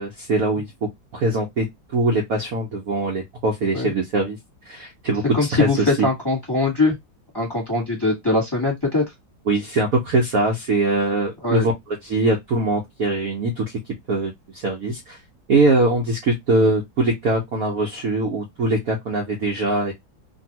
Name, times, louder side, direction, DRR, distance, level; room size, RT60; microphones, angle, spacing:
voice 1, 0.0-1.7 1.9-4.4 4.6-5.2 5.5-6.1 9.5-11.7 12.0-13.6 14.1-15.2 15.5-19.9, right 2 dB, 60° right, 0.9 m, -22 dB
voice 2, 5.3-6.9 7.3-9.0 11.4-11.7, left 3 dB, 15° left, 1.3 m, -21 dB
2.9 x 2.6 x 2.7 m
omnidirectional pair, 2.1 m